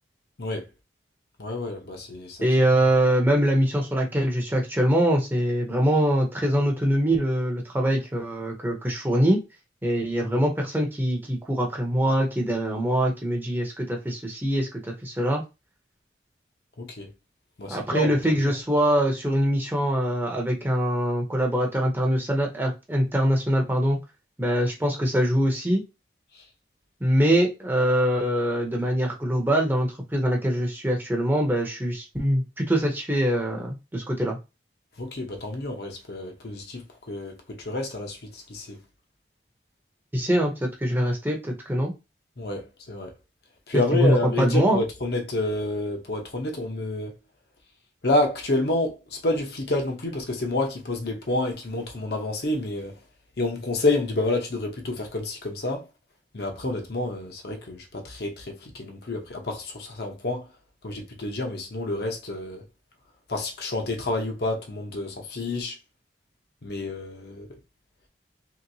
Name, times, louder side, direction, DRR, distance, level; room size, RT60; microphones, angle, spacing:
voice 1, 1.4-2.4 2.7-2.8 16.8-17.1 17.6-18.5 35.0-38.8 42.4-43.1 43.7-47.1 48.0-53.0 53.4-55.8 56.3-60.5 60.8-62.6 63.3-65.8 66.6-67.5, left 2 dB, 65° left, 0.8 m, -29 dB
voice 2, 2.4-9.4 9.8-15.4 17.7-24.0 24.4-25.8 27.0-34.4 40.1-41.9 43.9-44.8, equal, 10° right, 0.6 m, -23 dB
3.1 x 2.9 x 2.7 m
head